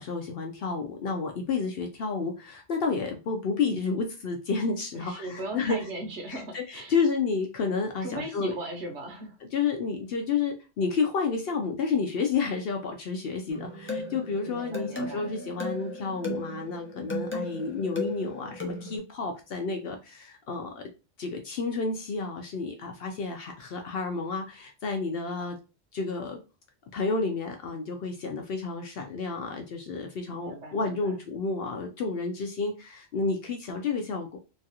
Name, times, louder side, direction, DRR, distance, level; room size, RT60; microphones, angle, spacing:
voice 1, 0.1-2.3 2.7-5.1 5.5-5.8 6.3-8.5 9.5-13.7 14.1-18.5 18.9-19.9 20.5-20.6 21.2-24.4 24.8-25.5 26.0-26.4 26.9-32.7 33.1-34.4, left 4 dB, 60° left, 3 dB, 0.6 m, -30 dB
voice 2, 4.9-6.9 8.0-9.4 14.4-15.3 30.3-31.2, right 1 dB, 65° right, 2 dB, 1.2 m, -38 dB
sound 1, 13.5-19.0, left 1 dB, 20° left, 0.3 m, -35 dB
3.0 x 2.4 x 2.7 m, 0.30 s
omnidirectional pair, 1.3 m